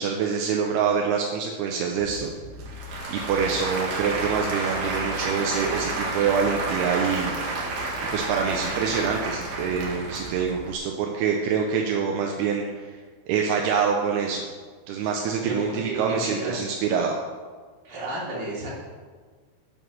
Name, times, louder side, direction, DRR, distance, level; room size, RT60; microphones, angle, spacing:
voice 1, 0.0-2.3 2.8-7.3 8.1-12.9 13.3-14.4 14.9-17.2, right 6 dB, 80° right, 1 dB, 2.3 m, -25 dB
Applause / Crowd, 2.0-10.7, right 2 dB, 60° right, 2.4 m, -30 dB
voice 2, 15.4-16.7 17.8-18.7, right 1 dB, 40° right, -6 dB, 3.6 m, -33 dB
8.3 x 7.3 x 6.4 m, 1.5 s
omnidirectional pair, 5.4 m